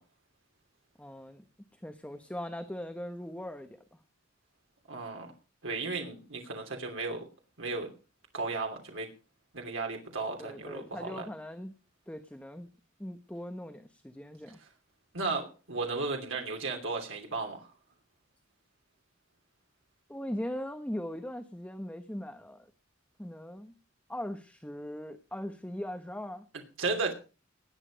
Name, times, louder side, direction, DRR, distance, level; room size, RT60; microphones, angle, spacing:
voice 1, 1.0-1.4 1.8-3.8 10.4-11.7 12.1-12.7 13.0-14.6 20.1-22.7 23.2-23.7 24.1-26.4, equal, 5° left, 7 dB, 1.0 m, -40 dB
voice 2, 4.9-5.3 5.6-7.2 7.6-7.9 8.3-9.1 9.5-11.2 14.6-14.7 15.1-17.7 26.8-27.1, right 3 dB, 85° right, 2 dB, 2.9 m, -34 dB
19.0 x 9.0 x 5.1 m, 0.35 s
head